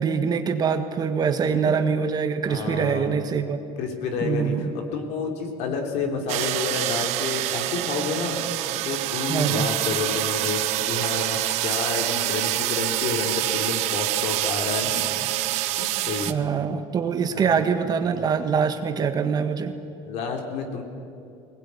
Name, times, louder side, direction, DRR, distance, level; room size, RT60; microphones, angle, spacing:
voice 1, 0.0-3.6 4.2-4.7 9.3-9.7 16.3-19.7, right 6 dB, 30° right, 8 dB, 1.6 m, -24 dB
voice 2, 2.5-3.1 3.8-10.6 10.9-15.0 15.4-16.4 17.3-17.7 18.1-18.3 20.0-20.8, left 5 dB, 60° left, 3 dB, 3.6 m, -30 dB
sound 1, 6.3-16.3, right 15 dB, 60° right, 1.1 m, -26 dB
21.0 x 20.0 x 9.8 m, 2.6 s
cardioid pair, 135°, 13 cm